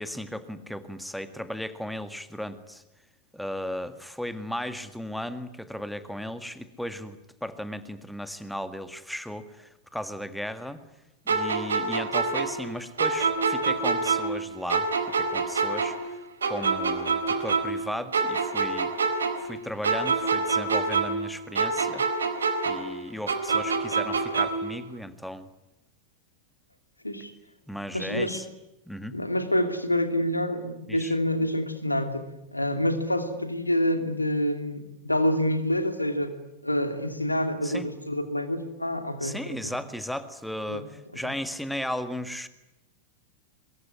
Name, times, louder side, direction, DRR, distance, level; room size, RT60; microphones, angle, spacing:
voice 1, 0.0-2.8 3.3-10.8 11.3-14.9 15.2-16.2 16.5-18.9 19.4-22.1 22.7-25.5 27.7-28.4 28.9-29.2 30.9-31.1 37.6-37.9 39.2-42.5, equal, ahead, 11 dB, 1.9 m, -36 dB
sound 1, 11.3-14.4 14.7-17.9 18.1-21.3 21.6-24.7, right 4 dB, 70° right, 4.2 m, -26 dB
voice 2, 27.9-28.4 29.1-36.4 36.6-39.7 40.7-40.9 41.2-41.3, left 1 dB, 85° left, 8 dB, 2.7 m, -27 dB
23.5 x 22.5 x 9.9 m, 0.89 s
figure-of-eight pair, 90°, 0 cm